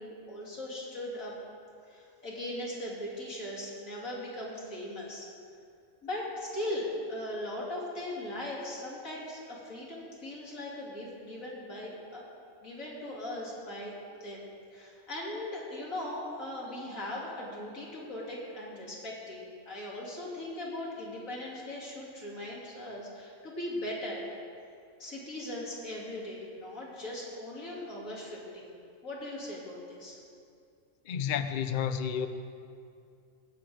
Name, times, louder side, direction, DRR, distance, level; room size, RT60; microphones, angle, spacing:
voice 1, 0.0-1.3 1.9-5.3 6.0-12.2 12.6-13.9 14.2-14.4 14.7-24.2 25.0-28.8 29.0-30.2, left 1 dB, 80° left, -5 dB, 3.2 m, -39 dB
voice 2, 31.1-32.3, left 8 dB, 55° left, 10 dB, 0.5 m, -30 dB
18.5 x 8.2 x 5.0 m, 2.4 s
omnidirectional pair, 1.4 m